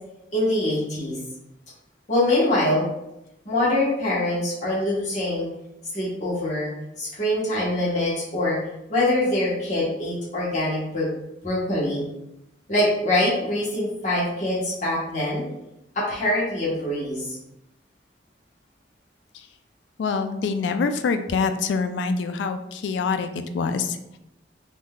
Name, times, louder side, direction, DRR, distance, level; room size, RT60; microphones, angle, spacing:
voice 1, 0.3-1.2 2.1-2.9 3.4-5.5 5.9-6.7 7.0-8.6 8.9-11.1 11.4-12.0 12.7-15.4 15.9-17.4, left 1 dB, 40° left, -8 dB, 1.0 m, -24 dB
voice 2, 20.0-23.3 23.5-24.0, left 5 dB, 75° left, 8 dB, 0.3 m, -25 dB
3.6 x 2.6 x 2.2 m, 0.86 s
head